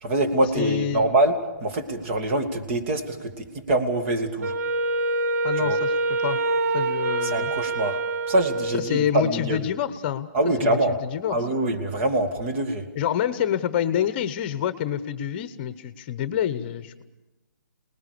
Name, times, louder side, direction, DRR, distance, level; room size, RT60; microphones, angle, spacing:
voice 1, 0.0-4.5 5.6-5.8 7.2-8.0 8.3-9.6 10.3-11.0 11.3-12.8, right 1 dB, 40° right, 6 dB, 2.5 m, -24 dB
voice 2, 0.5-1.1 5.4-6.4 6.7-7.5 8.8-10.3 10.6-11.4 12.9-17.0, left 10 dB, 30° left, 13 dB, 1.0 m, -27 dB
Wind instrument woodwind instrument, 4.4-9.1, right 2 dB, 55° right, 0.9 m, -25 dB
28.0 x 20.0 x 6.8 m, 1.0 s
hypercardioid pair, 145°, 10 cm